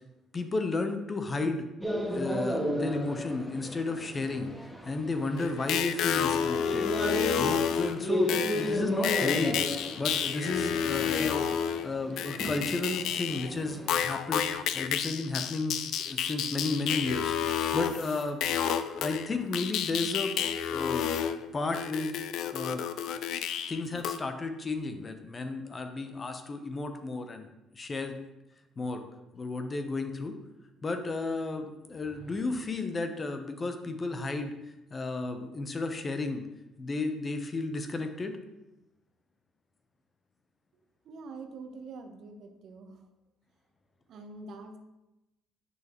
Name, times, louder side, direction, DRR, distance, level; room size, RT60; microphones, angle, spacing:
voice 1, 0.3-1.7 2.0-4.5 4.8-6.9 7.4-15.8 16.1-18.4 19.0-20.3 20.7-21.1 21.5-22.2 22.5-22.8 23.7-27.5 27.7-28.1 28.8-29.0 29.3-30.3 30.8-34.5 34.9-36.4 36.8-38.4, left 3 dB, 30° left, 6 dB, 0.8 m, -33 dB
sound 1, 1.8-13.9, equal, ahead, 1.3 m, -34 dB
sound 2, 5.4-13.5 13.9-24.2, left 8 dB, 70° left, 0.4 m, -30 dB
sound 3, 31.7-32.9, left 1 dB, 45° left, 2.7 m, -55 dB
voice 2, 41.0-43.0 44.1-44.8, right 3 dB, 65° right, 5 dB, 1.0 m, -45 dB
8.2 x 6.1 x 3.0 m, 0.98 s
supercardioid pair, 85°, 0 cm